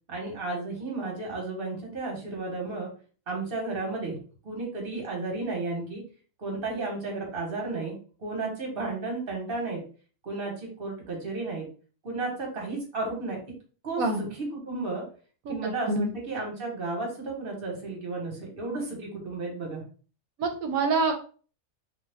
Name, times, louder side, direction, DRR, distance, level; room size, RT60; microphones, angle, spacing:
voice 1, 0.1-2.9 3.3-4.2 4.4-6.0 6.4-7.9 8.2-9.8 10.2-11.7 12.0-13.4 13.8-14.3 14.5-15.0 15.5-19.8, right 3 dB, 45° right, 0 dB, 1.2 m, -33 dB
voice 2, 15.5-16.1 20.4-21.1, right 3 dB, 75° right, 4 dB, 1.0 m, -26 dB
2.7 x 2.2 x 3.4 m, 0.39 s
omnidirectional pair, 1.5 m